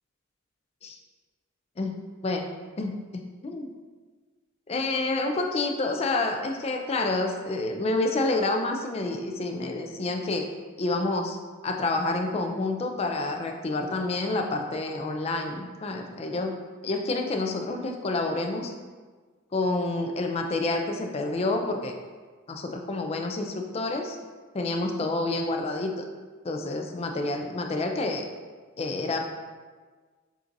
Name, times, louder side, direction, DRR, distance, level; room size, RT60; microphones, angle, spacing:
voice 1, 1.8-2.5 2.8-3.7 4.7-10.5 10.8-11.4 11.6-16.6 16.8-18.7 19.5-21.9 22.5-24.2 24.5-26.0 26.4-28.3 28.8-29.5, left 2 dB, 30° left, 3 dB, 0.3 m, -28 dB
7.3 x 2.6 x 2.6 m, 1.4 s
head